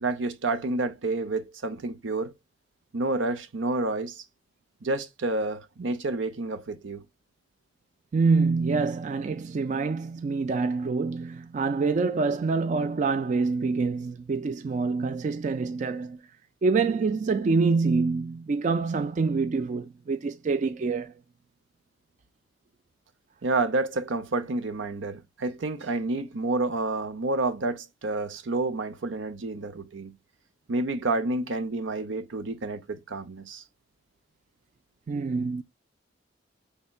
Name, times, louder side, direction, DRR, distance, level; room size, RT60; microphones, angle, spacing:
voice 1, 0.0-2.3 2.9-4.2 4.8-7.0 23.4-30.1 30.7-33.6, right 2 dB, 75° right, 0.7 m, -29 dB
voice 2, 8.1-16.2 16.6-21.1 35.1-35.6, right 4 dB, 40° right, 0.3 m, -26 dB
5.4 x 3.5 x 2.3 m
head